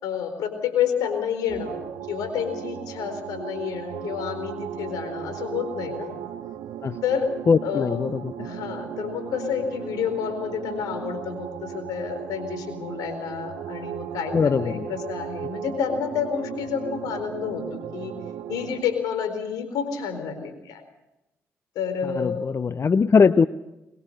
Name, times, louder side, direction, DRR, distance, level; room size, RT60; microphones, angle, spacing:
voice 1, 0.0-6.2 7.0-7.3 7.6-8.0 8.4-18.1 18.5-20.8 21.7-22.4, left 7 dB, 80° left, 7 dB, 4.2 m, -29 dB
sound 1, 1.5-18.8, right 10 dB, 80° right, 1.0 m, -36 dB
voice 2, 7.5-8.3 14.3-14.9 22.2-23.5, left 5 dB, 45° left, 14 dB, 0.7 m, -20 dB
23.0 x 21.0 x 6.7 m, 0.93 s
hypercardioid pair, 45°, 6 cm